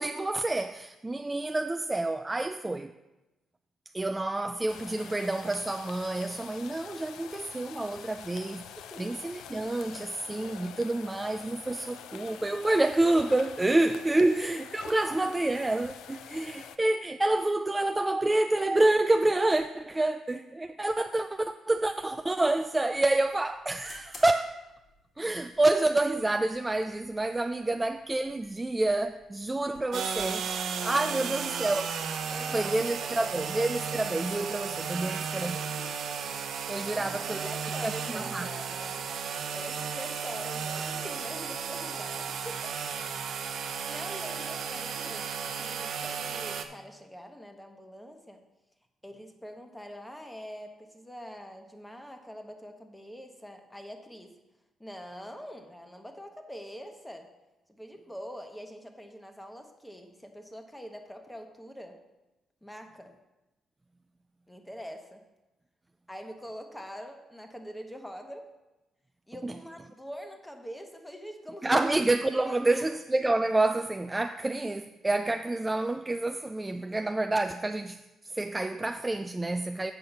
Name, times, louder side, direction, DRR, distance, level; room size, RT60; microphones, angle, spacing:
voice 1, 0.0-2.9 3.9-8.6 9.0-24.5 25.2-30.4 30.8-31.9 32.5-35.6 36.7-37.5 37.8-38.5 69.4-69.5 71.6-79.9, right 2 dB, 15° right, 0.3 m, -28 dB
sound 1, 4.7-16.8, left 9 dB, 85° left, 0.4 m, -46 dB
voice 2, 8.8-9.2 13.7-13.8 30.8-31.4 32.3-33.3 34.9-35.9 36.6-39.0 39.5-42.7 43.5-48.4 49.0-54.4 54.8-57.3 57.7-62.0 62.6-63.2 64.5-65.3 66.1-68.6 69.3-71.9 72.5-72.9, equal, 5° left, 1.1 m, -44 dB
sound 2, 22.6-35.1, left 2 dB, 50° left, 1.9 m, -58 dB
sound 3, 29.9-46.7, right 6 dB, 70° right, 0.7 m, -34 dB
8.0 x 5.4 x 5.7 m
cardioid pair, 90°, 0 cm